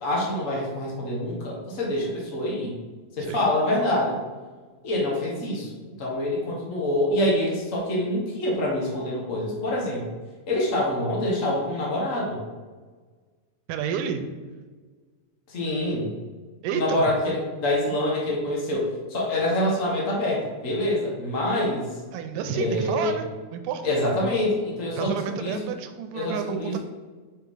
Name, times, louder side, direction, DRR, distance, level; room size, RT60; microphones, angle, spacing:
voice 1, 0.0-2.8 3.2-4.2 4.8-5.7 6.0-10.1 10.5-12.4 15.5-16.1 16.7-21.9 22.5-23.1 23.8-25.6 26.1-26.8, left 1 dB, 85° left, -3 dB, 0.7 m, -26 dB
voice 2, 13.7-14.3 16.6-17.1 22.1-23.8 24.9-26.8, right 7 dB, 85° right, 8 dB, 2.1 m, -30 dB
5.4 x 4.6 x 5.4 m, 1.4 s
omnidirectional pair, 3.8 m